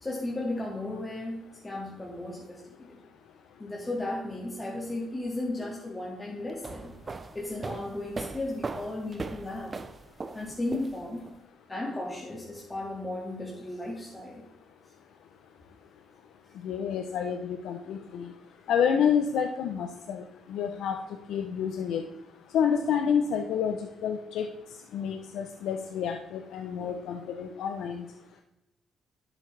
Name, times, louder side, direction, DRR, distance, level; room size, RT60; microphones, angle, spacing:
voice 1, 0.0-3.0 3.6-6.9 7.3-9.7 10.3-11.2 11.7-14.4, left 2 dB, 20° left, -4 dB, 2.2 m, -35 dB
sound 1, 6.5-11.3, right 4 dB, 30° right, 0.7 m, -39 dB
voice 2, 16.6-18.3 18.7-20.2 20.5-21.0 21.3-22.0 22.5-24.5 24.9-28.0, left 7 dB, 80° left, 5 dB, 0.7 m, -29 dB
11.5 x 7.4 x 3.4 m, 0.94 s
cardioid pair, 90°, 0 cm